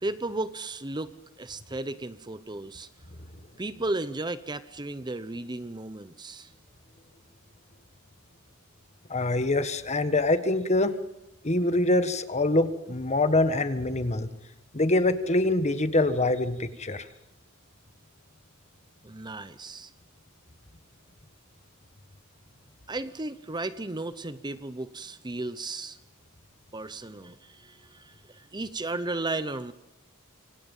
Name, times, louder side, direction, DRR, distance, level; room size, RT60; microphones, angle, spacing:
voice 1, 0.0-2.9 3.6-6.5 19.0-19.9 22.9-26.0 26.7-29.7, right 2 dB, 20° right, 13 dB, 0.8 m, -34 dB
voice 2, 9.1-10.9 11.4-14.3 14.7-17.1, left 2 dB, 30° left, 11 dB, 1.5 m, -24 dB
26.5 x 25.5 x 5.5 m, 0.94 s
head